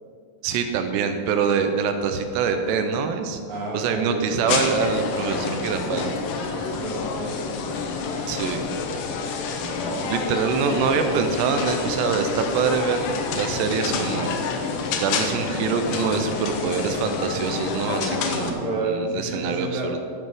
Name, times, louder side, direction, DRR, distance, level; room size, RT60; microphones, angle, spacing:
voice 1, 0.4-3.4 3.7-6.5 8.3-8.6 10.1-14.3 14.9-20.0, right 6 dB, 85° right, 7 dB, 2.9 m, -25 dB
voice 2, 3.5-4.5 6.5-7.5 9.8-10.4 18.4-19.9, right 2 dB, 55° right, -3 dB, 2.7 m, -30 dB
sound 1, 4.5-18.5, left 4 dB, 90° left, 3.2 m, -28 dB
13.0 x 7.8 x 3.6 m, 2.2 s
omnidirectional pair, 4.9 m